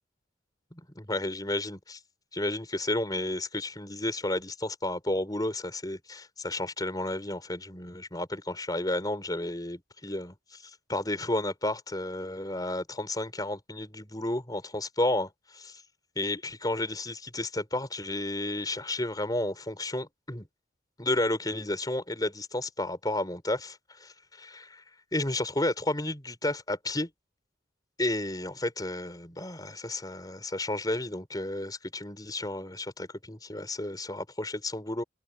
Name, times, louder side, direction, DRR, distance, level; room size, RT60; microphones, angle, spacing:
voice 1, 0.7-2.0 2.3-15.8 16.1-20.5 21.0-24.8 25.1-27.1 28.0-35.0, left 1 dB, 20° left, 4.7 m, -32 dB
head